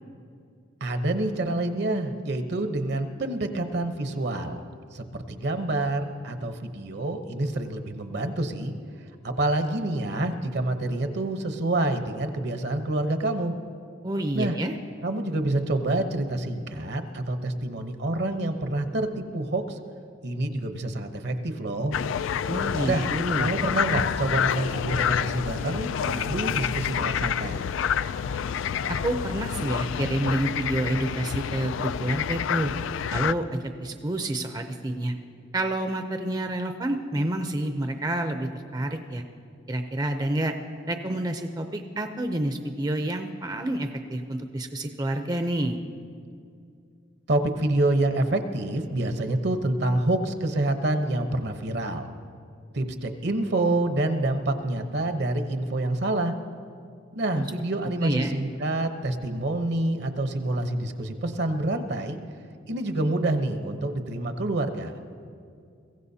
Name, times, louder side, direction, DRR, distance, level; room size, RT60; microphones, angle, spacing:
voice 1, 0.8-4.6 4.9-8.7 9.2-13.5 14.3-14.6 15.0-19.8 20.2-21.9 22.8-23.1 23.4-27.6 47.3-52.1 52.7-56.3 57.1-62.2 62.7-65.0, right 2 dB, 60° right, 7 dB, 0.9 m, -27 dB
voice 2, 14.0-14.7 22.5-23.5 28.9-32.7 33.1-35.1 35.5-39.2 39.7-40.5 40.9-45.8 57.3-57.4 58.0-58.3, right 1 dB, 20° right, 6 dB, 0.6 m, -28 dB
sound 1, 21.9-33.3, left 8 dB, 85° left, 0.3 m, -28 dB
23.0 x 15.5 x 2.8 m, 2.4 s
head